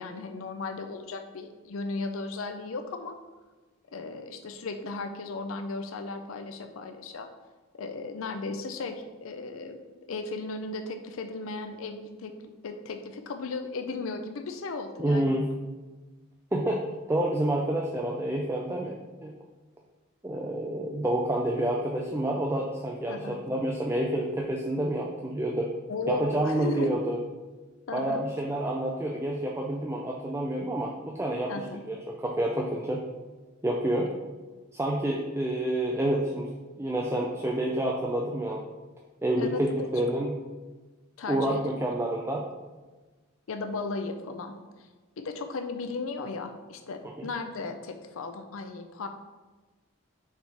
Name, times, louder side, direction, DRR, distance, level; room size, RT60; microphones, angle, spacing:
voice 1, 0.0-3.2 3.9-7.3 7.7-9.8 10.1-12.3 12.6-15.3 23.1-23.4 25.9-27.0 27.9-28.2 31.5-31.8 39.4-39.9 41.2-42.1 43.5-44.9 45.2-49.1, left 3 dB, 75° left, 7 dB, 0.5 m, -36 dB
voice 2, 15.0-15.5 16.5-19.3 20.2-25.7 26.1-27.2 27.9-33.0 33.6-34.1 34.7-36.5 36.8-38.6 39.2-40.3 41.3-42.5 47.2-47.3, right 1 dB, 10° right, -1 dB, 0.4 m, -28 dB
6.5 x 3.4 x 4.8 m, 1.3 s
head